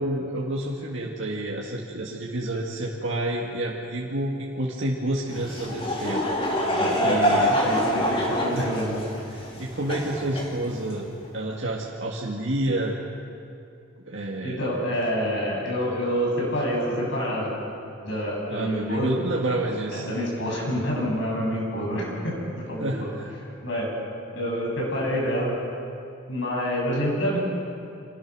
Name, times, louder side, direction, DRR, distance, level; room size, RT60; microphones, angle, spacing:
voice 1, 0.0-6.2 7.0-7.6 8.5-8.7 9.3-11.0 11.3-12.9 14.1-14.7 18.5-20.1 22.8-23.3, right 1 dB, 65° right, -4 dB, 2.0 m, -29 dB
Laughter / Crowd, 5.3-11.0, equal, 30° left, 3.1 m, -25 dB
voice 2, 6.9-9.0 14.4-17.5 18.0-19.1 19.9-22.4 22.7-23.1 23.6-23.9 24.3-25.5 26.3-27.4, equal, 65° left, -2 dB, 7.3 m, -27 dB
27.0 x 18.5 x 6.2 m, 2.5 s
head